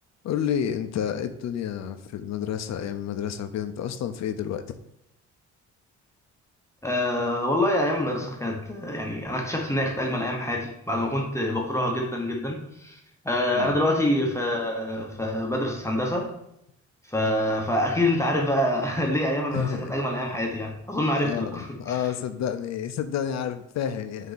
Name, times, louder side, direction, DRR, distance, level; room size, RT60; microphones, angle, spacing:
voice 1, 0.2-4.6 13.5-13.8 19.5-20.0 21.2-24.3, left 9 dB, 60° left, 9 dB, 0.5 m, -30 dB
voice 2, 6.8-13.0 13.2-16.3 17.1-22.1, left 1 dB, 10° left, 0 dB, 0.8 m, -26 dB
4.5 x 2.7 x 3.9 m, 0.78 s
cardioid pair, 90°, 30 cm